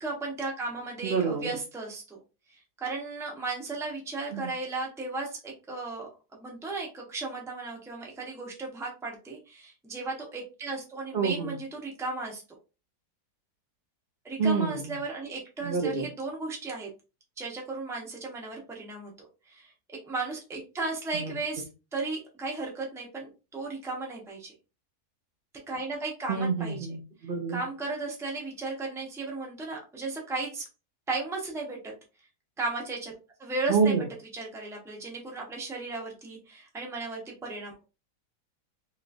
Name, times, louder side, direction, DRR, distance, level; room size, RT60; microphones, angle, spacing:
voice 1, 0.0-2.2 2.5-12.4 14.2-16.9 17.4-19.1 19.5-19.7 20.0-24.5 25.7-26.8 27.5-30.7 31.1-31.9 32.6-33.1 33.4-34.0 34.3-37.8, right 3 dB, 5° right, -1 dB, 0.5 m, -35 dB
voice 2, 1.0-1.5 4.3-4.5 11.1-11.5 14.4-14.7 15.6-16.1 21.1-21.3 26.3-27.6 33.7-34.0, right 5 dB, 65° right, 1 dB, 0.5 m, -27 dB
3.1 x 3.0 x 2.4 m, 0.31 s
omnidirectional pair, 1.7 m